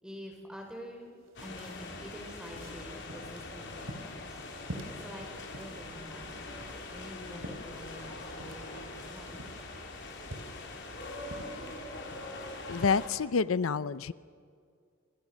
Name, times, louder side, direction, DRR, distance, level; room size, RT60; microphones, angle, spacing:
voice 1, 0.0-1.1 1.4-4.4 4.9-6.4 6.9-9.3, equal, 5° right, 1 dB, 5.3 m, -47 dB
sound 1, 0.6-0.7 1.0-12.5, equal, 75° right, 3.3 m, -48 dB
sound 2, 1.3-13.1, left 2 dB, 60° left, 4.0 m, -43 dB
voice 2, 12.7-14.1, left 5 dB, 90° left, 17 dB, 0.6 m, -28 dB
29.0 x 26.0 x 6.3 m, 2.1 s
head